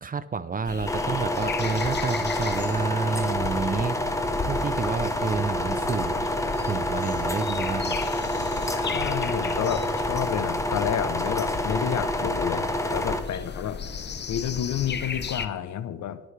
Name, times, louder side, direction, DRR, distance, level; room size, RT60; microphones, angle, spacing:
voice 1, 0.0-4.0 4.5-6.3 6.6-8.0, right 5 dB, 30° right, 15 dB, 0.6 m, -29 dB
sound 1, 0.6-15.5, left 5 dB, 35° left, 1.0 m, -35 dB
sound 2, 0.9-13.2, left 1 dB, 10° left, 1.2 m, -28 dB
voice 2, 8.8-13.8 14.3-16.2, left 10 dB, 70° left, 13 dB, 0.9 m, -30 dB
22.0 x 9.4 x 3.4 m, 1.0 s
cardioid pair, 90°, 30 cm